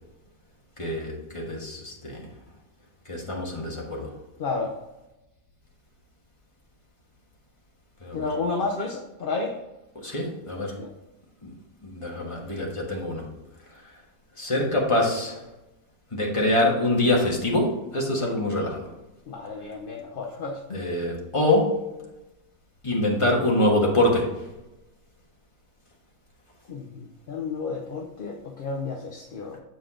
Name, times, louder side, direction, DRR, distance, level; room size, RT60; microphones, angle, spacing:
voice 1, 0.8-2.3 3.0-4.1 8.0-8.3 9.9-10.7 11.4-11.5 11.8-13.3 14.4-15.4 16.1-18.9 20.7-21.8 22.8-24.4, left 1 dB, 20° left, -2 dB, 1.4 m, -25 dB
voice 2, 4.4-4.8 8.1-9.5 10.7-10.9 19.3-20.8 26.7-29.6, left 4 dB, 45° left, 0 dB, 0.7 m, -31 dB
7.2 x 5.2 x 3.7 m, 0.99 s
omnidirectional pair, 1.6 m